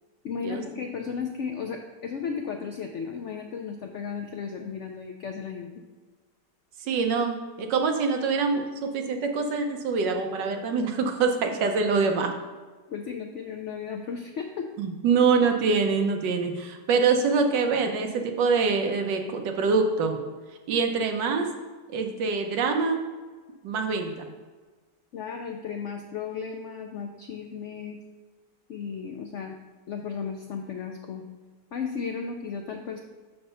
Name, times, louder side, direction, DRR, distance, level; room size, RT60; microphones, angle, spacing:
voice 1, 0.2-5.7 12.9-14.7 25.1-28.0 28.7-29.6 29.9-31.2 31.7-33.0, left 6 dB, 85° left, 3 dB, 0.6 m, -34 dB
voice 2, 6.8-12.3 14.8-20.2 20.7-21.5 21.9-23.0 23.6-24.3, right 4 dB, 85° right, 5 dB, 1.5 m, -25 dB
6.7 x 4.2 x 5.5 m, 1.4 s
omnidirectional pair, 1.9 m